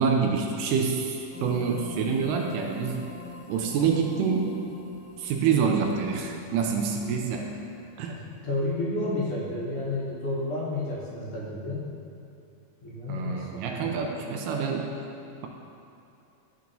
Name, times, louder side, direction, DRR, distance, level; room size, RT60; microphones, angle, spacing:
voice 1, 0.0-3.1 3.5-4.6 5.2-7.6 8.0-8.1 13.1-15.0, right 6 dB, 80° right, 2 dB, 2.0 m, -27 dB
sound 1, 1.3-9.0, left 3 dB, 35° left, 1.1 m, -45 dB
voice 2, 8.1-11.9 12.8-13.8, left 2 dB, 60° left, -6 dB, 1.6 m, -31 dB
12.0 x 4.6 x 2.6 m, 2.6 s
omnidirectional pair, 3.8 m